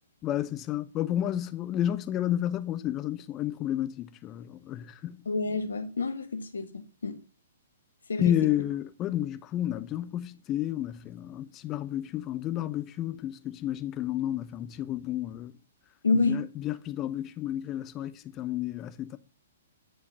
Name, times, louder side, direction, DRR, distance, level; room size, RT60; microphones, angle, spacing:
voice 1, 0.2-5.2 8.2-15.5 16.3-19.2, left 12 dB, 25° left, 0.8 m, -31 dB
voice 2, 5.2-7.2 8.1-8.3 16.0-16.5, left 3 dB, 75° left, 1.5 m, -28 dB
10.0 x 4.6 x 6.9 m
figure-of-eight pair, 120°, 0 cm